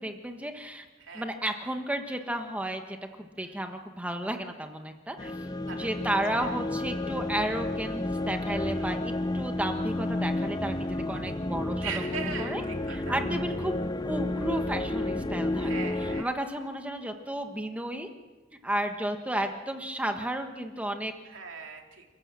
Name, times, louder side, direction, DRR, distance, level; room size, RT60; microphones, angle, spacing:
voice 1, 0.0-0.9 1.1-5.4 5.8-11.9 12.4-12.6 12.9-15.7 16.0-18.1 18.6-21.1, right 1 dB, 5° right, 5 dB, 1.4 m, -33 dB
sound 1, 5.2-16.2, left 2 dB, 20° left, 0.7 m, -31 dB
voice 2, 5.6-5.9 6.4-6.5 8.4-9.0 11.1-11.3 11.8-13.1 15.6-16.3 21.2-22.0, right 6 dB, 90° right, 2 dB, 3.1 m, -40 dB
29.0 x 14.5 x 7.5 m, 1.3 s
head